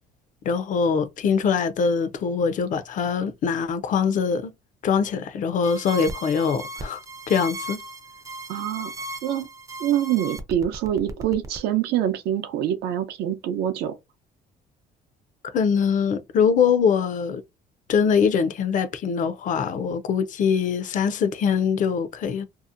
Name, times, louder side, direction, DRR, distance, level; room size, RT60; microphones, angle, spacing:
voice 1, 0.4-4.5 4.8-7.0 7.3-7.8 15.4-17.4 17.9-22.5, left 6 dB, 50° left, 0.5 m, -23 dB
sound 1, 5.6-11.6, right 1 dB, 20° right, 0.4 m, -36 dB
voice 2, 8.5-8.9 9.2-9.5 9.8-13.9, right 10 dB, 75° right, 0.6 m, -25 dB
2.7 x 2.1 x 2.4 m
cardioid pair, 110°, 17 cm